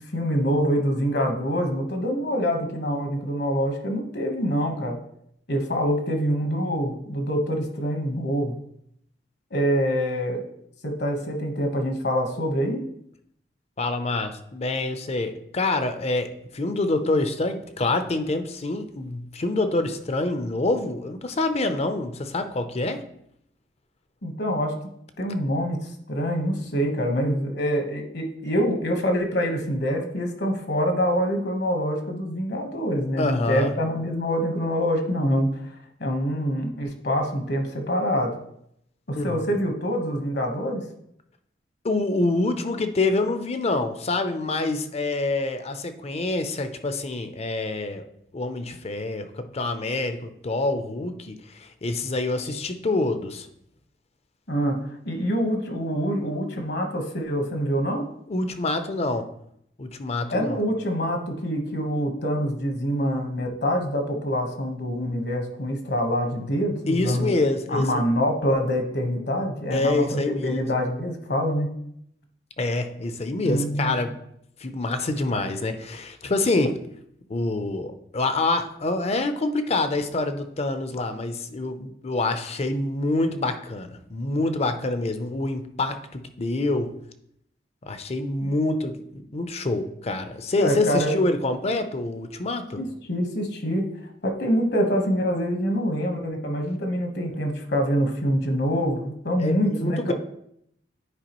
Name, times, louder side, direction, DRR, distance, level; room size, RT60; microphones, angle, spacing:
voice 1, 0.1-5.0 5.5-8.6 9.5-10.4 10.8-12.8 24.2-24.7 25.2-35.5 36.0-38.3 39.1-40.8 54.5-54.8 55.0-58.1 60.3-67.3 67.7-71.7 73.4-73.9 88.4-88.5 90.6-91.1 92.8-93.9 94.2-100.1, equal, 65° left, 4 dB, 1.2 m, -25 dB
voice 2, 13.8-23.0 33.2-33.7 39.2-39.5 41.8-48.0 48.3-53.5 58.3-59.3 59.8-60.6 66.9-68.0 69.7-70.7 72.6-74.1 74.6-76.7 77.3-86.9 87.8-92.8 99.4-100.1, left 2 dB, 35° left, 9 dB, 0.6 m, -26 dB
9.8 x 4.7 x 3.0 m, 0.74 s
head